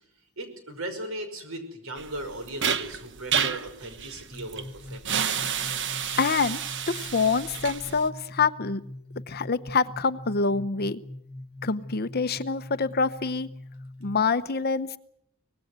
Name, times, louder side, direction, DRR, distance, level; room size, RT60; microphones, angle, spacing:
voice 1, 0.4-5.4, right 1 dB, 75° right, 8 dB, 5.6 m, -38 dB
sound 1, 2.0-8.1, right 7 dB, 60° right, 1.2 m, -30 dB
sound 2, 4.3-14.1, left 1 dB, 20° right, 1.9 m, -43 dB
voice 2, 6.2-6.6 6.9-8.9 9.3-11.0 11.6-13.5 14.0-15.0, left 4 dB, 45° left, 13 dB, 0.9 m, -26 dB
24.0 x 19.5 x 8.1 m, 0.72 s
head